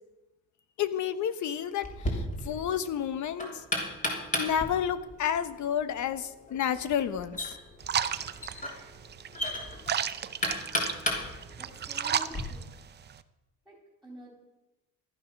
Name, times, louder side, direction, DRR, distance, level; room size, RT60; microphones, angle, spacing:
voice 1, 0.8-3.5 4.4-7.5, left 9 dB, 55° left, 12 dB, 1.1 m, -30 dB
Knock, 1.8-12.4, left 1 dB, 20° left, 3.2 m, -35 dB
sound 1, 7.8-13.2, right 8 dB, 30° right, 0.6 m, -34 dB
voice 2, 11.6-12.7 13.6-13.7 14.0-14.3, right 1 dB, ahead, -2 dB, 3.3 m, -48 dB
15.0 x 12.5 x 6.0 m, 1.0 s
cardioid pair, 140°, 35 cm